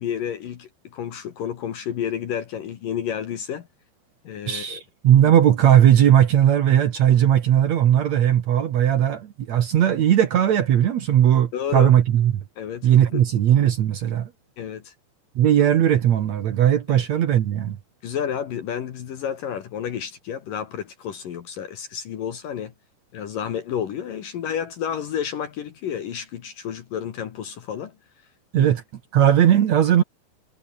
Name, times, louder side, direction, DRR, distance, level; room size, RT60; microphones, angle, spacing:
voice 1, 0.0-3.7 4.2-4.8 11.5-11.9 12.6-13.3 14.6-14.9 16.9-17.0 18.0-22.7 23.1-27.9 28.6-28.7, left 8 dB, 60° left, 2.9 m, -30 dB
voice 2, 4.5-12.3 12.8-14.3 15.4-17.8 28.5-28.8 29.1-30.0, right 10 dB, 70° right, 1.6 m, -18 dB
omnidirectional pair, 5.2 m